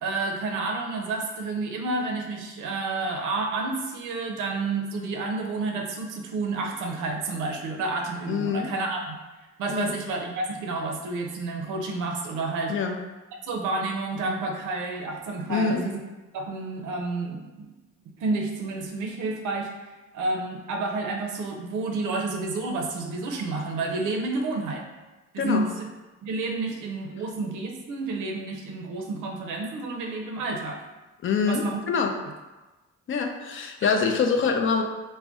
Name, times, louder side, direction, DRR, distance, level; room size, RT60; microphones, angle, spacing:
voice 1, 0.0-9.2 9.6-12.7 13.4-16.0 16.3-17.7 18.2-19.7 20.1-24.8 25.3-25.9 26.2-30.8 31.5-31.8 33.8-33.9, right 3 dB, 85° right, 1 dB, 0.6 m, -30 dB
voice 2, 8.3-8.7 9.7-9.9 12.7-13.0 15.5-15.8 25.4-25.7 31.2-32.1 33.1-34.8, left 5 dB, 45° left, 4 dB, 0.4 m, -25 dB
2.5 x 2.1 x 3.5 m, 1.1 s
cardioid pair, 90°, 30 cm